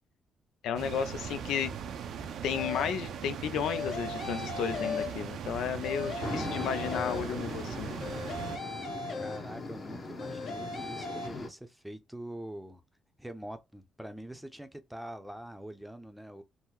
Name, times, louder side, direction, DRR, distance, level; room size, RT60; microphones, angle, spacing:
voice 1, 0.6-1.7 2.4-7.9, left 7 dB, 85° left, 0.4 m, -33 dB
sound 1, 0.7-8.6, right 7 dB, 70° right, 0.5 m, -39 dB
sound 2, 2.5-3.1 3.6-5.5 5.8-7.6 8.0-9.8 10.2-11.3, left 4 dB, 65° left, 1.2 m, -38 dB
sound 3, 6.2-11.5, left 3 dB, 40° left, 0.9 m, -40 dB
voice 2, 9.2-12.8 13.2-16.4, right 1 dB, 5° right, 0.6 m, -44 dB
3.6 x 2.1 x 2.9 m
cardioid pair, 90°, 0 cm